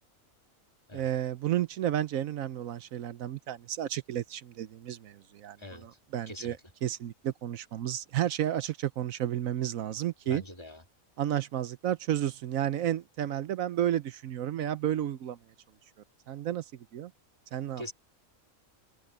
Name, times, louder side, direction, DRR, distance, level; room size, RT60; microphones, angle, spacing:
voice 1, 0.9-5.6 6.1-6.6 6.8-10.4 11.2-15.4 16.3-17.1 17.5-17.9, right 11 dB, 75° right, 1.1 m, -32 dB
voice 2, 5.6-6.0 6.3-6.6 10.2-10.8 17.8-17.9, left 1 dB, 20° left, 2.5 m, -43 dB
open air
omnidirectional pair, 1.5 m